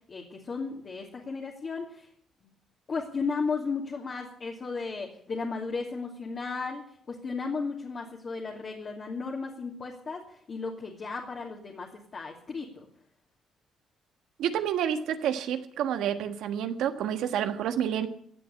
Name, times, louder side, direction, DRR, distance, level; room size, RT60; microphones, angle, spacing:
voice 1, 0.1-2.1 2.4-2.5 2.9-12.9, left 4 dB, 45° left, -1 dB, 2.6 m, -35 dB
voice 2, 14.4-18.1, right 9 dB, 85° right, 8 dB, 1.4 m, -29 dB
15.5 x 7.9 x 9.7 m, 0.65 s
cardioid pair, 90°, 0 cm